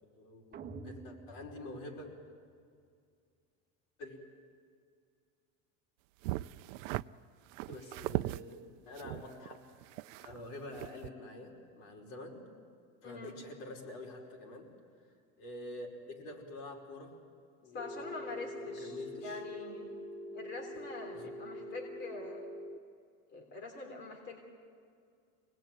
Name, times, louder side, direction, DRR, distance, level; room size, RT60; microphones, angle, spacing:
voice 1, 0.0-2.1 4.0-4.1 7.7-9.6 10.2-12.4 13.0-14.7 15.4-17.1 17.6-19.4 21.1-21.3, left 2 dB, 70° left, 0 dB, 5.1 m, -47 dB
sound 1, 0.5-2.7, right 4 dB, 25° right, 1.2 m, -49 dB
sound 2, 6.2-7.0 7.5-8.4 9.0-10.5 10.7-11.1, right 18 dB, 75° right, 0.6 m, -38 dB
voice 2, 13.0-13.3 17.7-19.9 20.3-22.4 23.3-24.4, left 3 dB, 30° left, 1 dB, 3.3 m, -44 dB
Telephone, 17.8-22.8, equal, 10° left, 0.7 m, -44 dB
25.5 x 19.0 x 9.3 m, 2.3 s
cardioid pair, 165°, 38 cm